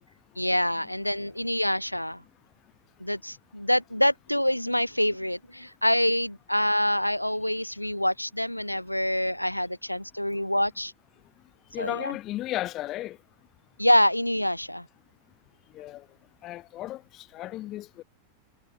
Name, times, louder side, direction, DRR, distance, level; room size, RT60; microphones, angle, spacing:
voice 1, 0.4-2.2 3.0-10.9 11.8-12.1 13.8-14.9, left 1 dB, 90° left, 0.4 m, -26 dB
voice 2, 11.7-13.2 15.7-16.1 16.4-18.0, left 15 dB, 35° left, 0.8 m, -35 dB
figure-of-eight pair, 90°, 0 cm